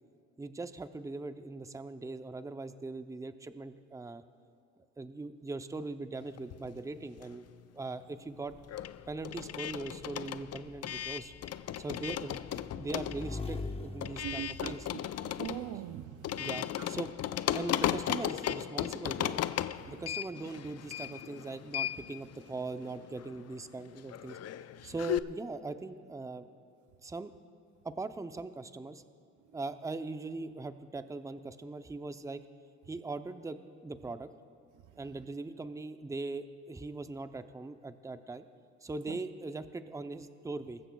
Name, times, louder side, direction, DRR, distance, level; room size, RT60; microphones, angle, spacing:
voice 1, 0.4-4.2 5.0-7.4 7.7-8.5 9.1-11.3 11.8-12.4 12.7-14.9 16.4-17.1 17.5-19.4 19.9-24.4 24.8-26.5 27.0-27.3 27.8-29.0 29.5-32.4 32.9-34.3 35.0-38.5 38.8-40.8, right 3 dB, 10° right, 0.5 m, -40 dB
sound 1, 6.4-7.6 7.9-25.2, left 11 dB, 55° left, 0.4 m, -36 dB
Motorcycle / Engine, 8.5-15.6, left 3 dB, 20° left, 0.9 m, -44 dB
voice 2, 14.2-14.8 15.2-16.5 19.8-19.9 39.1-39.2, right 12 dB, 75° right, 0.5 m, -41 dB
20.0 x 15.0 x 2.3 m
cardioid pair, 90°, 30 cm